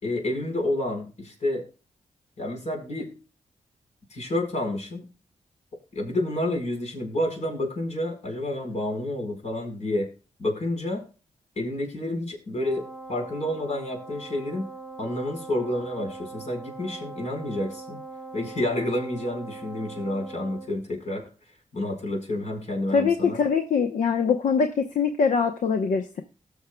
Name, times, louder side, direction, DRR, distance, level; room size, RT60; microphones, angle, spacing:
voice 1, 0.0-1.6 2.4-3.1 4.1-5.1 5.9-10.1 10.4-11.0 11.6-14.7 15.0-18.0 18.3-21.3 21.7-23.4, left 1 dB, 60° left, 2 dB, 4.6 m, -29 dB
Wind instrument woodwind instrument, 12.5-20.8, right 3 dB, 10° left, 1.3 m, -41 dB
voice 2, 22.9-26.2, left 5 dB, 80° left, 6 dB, 0.9 m, -23 dB
19.0 x 6.5 x 2.3 m, 0.35 s
cardioid pair, 75°, 13 cm